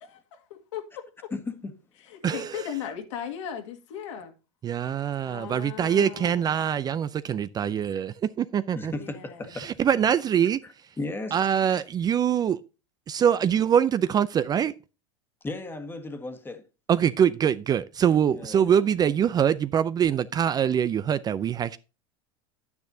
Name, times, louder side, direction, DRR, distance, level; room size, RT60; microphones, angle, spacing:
voice 1, 0.0-1.1 2.1-4.3 5.2-6.7 8.9-9.4, left 9 dB, 75° left, 2.0 m, -38 dB
voice 2, 1.3-1.7 7.9-8.0 8.7-9.7 10.6-11.6 15.4-16.6 18.3-18.8, left 2 dB, 15° left, 1.5 m, -36 dB
voice 3, 2.2-2.6 4.6-8.9 9.6-10.6 11.3-12.6 13.1-14.7 16.9-21.8, right 8 dB, 25° right, 0.4 m, -24 dB
10.0 x 9.4 x 2.7 m
hypercardioid pair, 115°, 16 cm